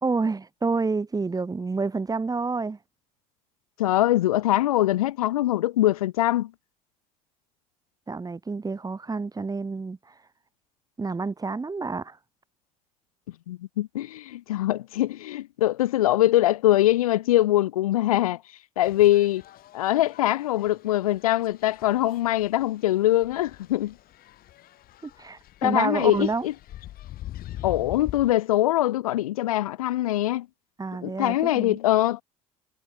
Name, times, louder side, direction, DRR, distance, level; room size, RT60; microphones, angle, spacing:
voice 1, 0.0-2.8 8.1-10.1 11.0-12.2 25.0-26.5 30.8-31.8, right 4 dB, 20° right, 2.0 m, -29 dB
voice 2, 3.8-6.5 13.3-18.4 18.8-19.4 19.7-24.0 25.6-26.5 27.6-30.5 31.0-32.2, left 14 dB, 85° left, 1.0 m, -23 dB
sound 1, 18.8-28.3, left 14 dB, 55° left, 2.8 m, -43 dB
hypercardioid pair, 65°, 18 cm